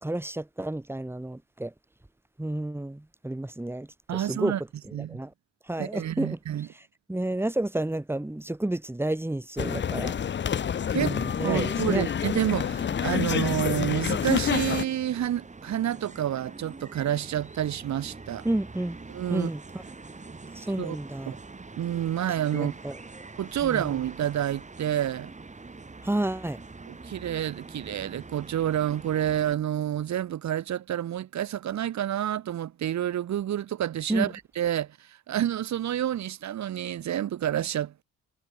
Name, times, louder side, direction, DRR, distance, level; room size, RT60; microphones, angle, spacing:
voice 1, 0.0-1.7 2.4-4.5 4.9-5.3 5.7-6.4 7.1-10.1 10.9-12.1 18.4-19.0 19.3-19.6 20.5-21.4 22.5-22.9 23.6-23.9 26.0-26.6 34.1-34.2, right 1 dB, 10° right, 2.7 m, -30 dB
voice 2, 4.1-4.6 4.9-5.2 5.8-6.7 10.9-11.2 11.4-18.4 19.1-19.5 20.8-21.0 21.3-21.4 21.8-22.7 23.4-25.3 26.9-38.0, right 11 dB, 65° right, 2.1 m, -29 dB
sound 1, 9.6-14.8, left 8 dB, 40° left, 0.8 m, -28 dB
sound 2, 12.2-29.6, right 3 dB, 25° right, 7.3 m, -45 dB
cardioid pair, 90°, 30 cm